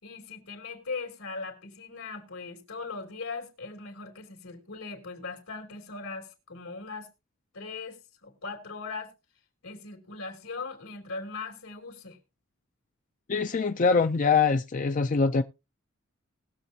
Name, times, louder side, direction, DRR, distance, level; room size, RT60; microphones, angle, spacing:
voice 1, 0.0-7.1 7.5-9.1 9.6-12.2, left 4 dB, 80° left, 2.8 m, -39 dB
voice 2, 13.3-15.4, left 5 dB, 40° left, 0.4 m, -23 dB
20.0 x 7.2 x 2.8 m
head